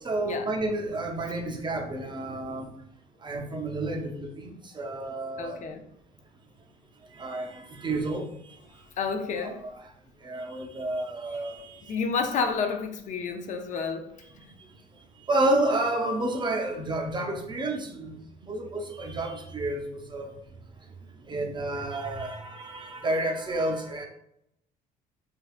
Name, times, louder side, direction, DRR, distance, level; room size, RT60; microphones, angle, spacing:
voice 1, 0.0-2.7 3.2-5.6 7.1-8.5 9.4-9.9 10.2-12.0 14.3-14.4 15.3-18.2 18.4-20.3 21.2-24.1, right 2 dB, 25° right, 0.5 m, -30 dB
voice 2, 5.4-5.8 9.0-9.6 11.9-14.1, left 5 dB, 45° left, 0.4 m, -30 dB
3.4 x 2.3 x 2.4 m
cardioid pair, 110°, 17 cm